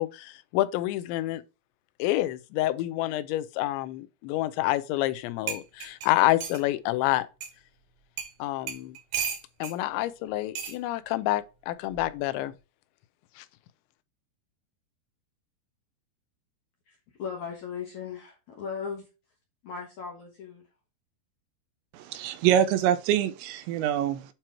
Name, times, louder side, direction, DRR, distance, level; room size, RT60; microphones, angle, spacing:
voice 1, 0.0-1.4 2.0-7.3 8.4-9.0 9.6-12.5 13.4-13.5, left 16 dB, 90° left, 3.0 m, -28 dB
sound 1, 5.1-5.2 5.5-6.6 7.4-7.5 8.2-8.3 8.7-9.8 10.5-10.8 11.9-12.2, right 8 dB, 55° right, 2.6 m, -34 dB
voice 2, 16.9-19.1 19.6-20.6, left 6 dB, 70° left, 1.8 m, -37 dB
voice 3, 21.9-24.3, right 10 dB, 85° right, 2.9 m, -25 dB
9.0 x 3.0 x 4.5 m
omnidirectional pair, 5.1 m